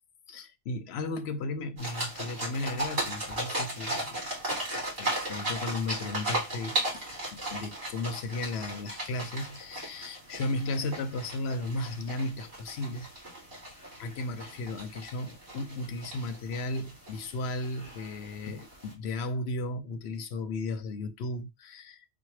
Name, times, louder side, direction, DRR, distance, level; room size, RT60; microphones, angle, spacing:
voice 1, 0.3-4.3 5.0-7.1 7.3-13.1 14.0-22.0, left 2 dB, 60° left, 0.8 m, -35 dB
sound 1, 1.8-18.9, right 1 dB, 45° right, 2.9 m, -36 dB
4.5 x 2.2 x 4.7 m
omnidirectional pair, 1.4 m